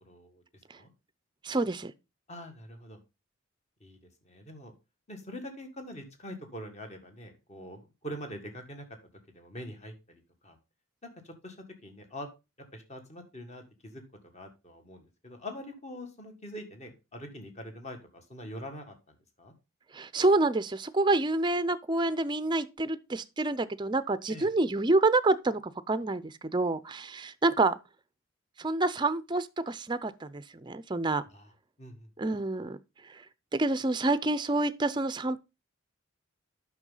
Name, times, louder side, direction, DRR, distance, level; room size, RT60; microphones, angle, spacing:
voice 1, 0.0-0.4 0.7-0.9 2.3-3.0 3.8-4.0 4.2-4.7 5.1-8.9 9.3-10.6 11.0-11.6 11.8-12.3 12.7-14.0 14.3-19.5 24.3-24.5 31.3-31.5 31.8-32.1, equal, 35° left, 1.7 m, -44 dB
voice 2, 1.4-1.9 19.9-27.8 28.6-31.2 32.2-32.8 33.1-33.2 33.5-35.4, right 2 dB, 20° right, 0.5 m, -28 dB
9.1 x 6.2 x 3.9 m
head